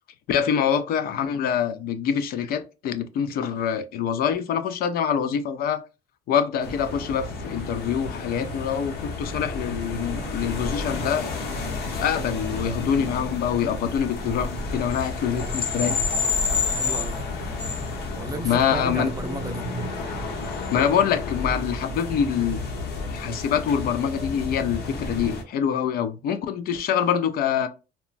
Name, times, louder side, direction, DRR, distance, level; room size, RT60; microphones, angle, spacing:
voice 1, 0.3-5.8 6.3-11.3 12.0-16.0 18.4-19.1 20.7-22.6 23.1-27.7, left 8 dB, 65° left, 0.4 m, -25 dB
sound 1, 6.6-25.4, left 3 dB, 85° left, 0.9 m, -30 dB
voice 2, 16.4-17.5 18.2-19.7, right 2 dB, 20° right, 0.5 m, -35 dB
2.9 x 2.1 x 2.4 m
cardioid pair, 110°, 17 cm